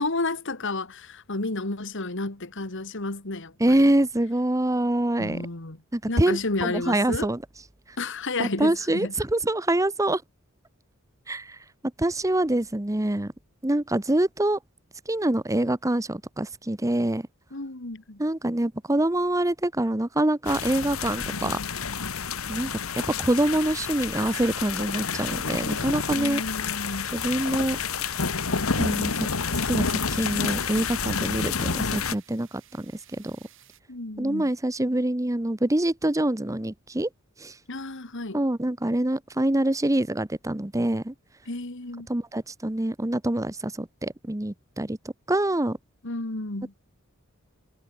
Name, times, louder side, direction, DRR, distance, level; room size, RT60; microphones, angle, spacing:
voice 1, 0.0-3.9 5.2-5.8 6.1-7.3 8.0-9.1 17.5-18.2 26.1-27.1 33.9-34.5 37.7-38.4 41.5-42.1 46.0-46.7, left 2 dB, 65° left, 2.3 m, -31 dB
voice 2, 3.6-5.4 5.9-7.4 8.4-10.2 11.3-11.6 12.0-13.3 13.6-14.6 15.1-17.3 18.2-21.6 22.5-22.8 23.2-26.4 27.1-27.8 28.8-29.3 29.7-33.4 34.2-37.1 37.4-37.5 38.3-41.1 42.1-45.0 45.3-45.8, right 1 dB, 15° right, 0.9 m, -25 dB
sound 1, 20.4-32.1, left 5 dB, 90° left, 1.6 m, -29 dB
sound 2, 24.0-33.8, right 11 dB, 65° right, 6.7 m, -59 dB
head